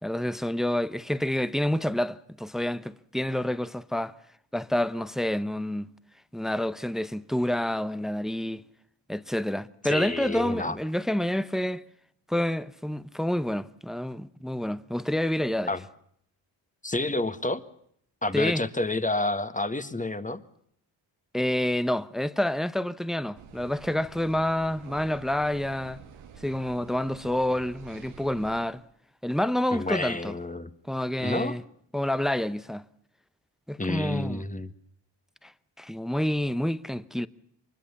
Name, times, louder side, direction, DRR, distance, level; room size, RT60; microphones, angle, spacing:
voice 1, 0.0-4.1 4.5-5.9 6.3-8.6 9.1-11.8 12.3-15.7 18.3-18.6 21.3-26.0 26.4-28.8 29.2-30.3 30.9-31.6 31.9-32.8 33.7-34.5 35.4-35.5 35.8-37.3, left 1 dB, ahead, 0.9 m, -28 dB
voice 2, 9.8-10.8 15.7-15.8 16.8-17.6 18.2-20.4 29.7-30.7 31.2-31.6 33.8-34.7, left 2 dB, 15° left, 1.5 m, -29 dB
sound 1, 23.3-28.6, right 7 dB, 90° right, 2.0 m, -48 dB
24.0 x 21.0 x 7.2 m
cardioid pair, 60°, 47 cm